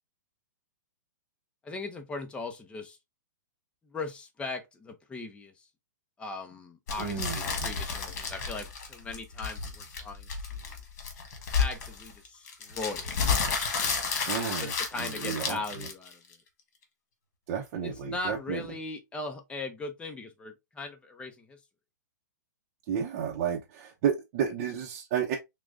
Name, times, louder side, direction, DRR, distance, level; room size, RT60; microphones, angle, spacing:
voice 1, 1.6-3.0 3.9-5.5 6.2-10.3 11.6-13.1 14.6-16.1 17.8-21.6, left 3 dB, 10° left, 0.7 m, -39 dB
sound 1, 6.9-16.3, left 5 dB, 55° left, 1.4 m, -31 dB
voice 2, 7.0-7.7 14.3-15.6 17.5-18.7 22.9-25.4, right 8 dB, 45° right, 0.7 m, -32 dB
6.0 x 2.3 x 2.5 m
hypercardioid pair, 130°, 10 cm